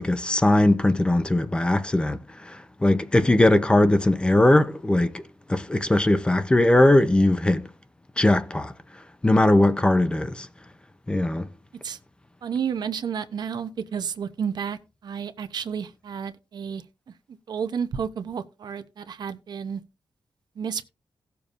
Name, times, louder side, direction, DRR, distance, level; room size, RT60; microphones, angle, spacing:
voice 1, 0.0-5.2 5.5-7.7 8.2-8.7 9.2-10.5 11.1-11.5, left 1 dB, 15° left, 0.6 m, -20 dB
voice 2, 12.4-16.8 17.5-19.8 20.6-20.9, right 7 dB, 65° right, 0.8 m, -31 dB
17.5 x 6.9 x 2.5 m
wide cardioid pair, 170°, 8 cm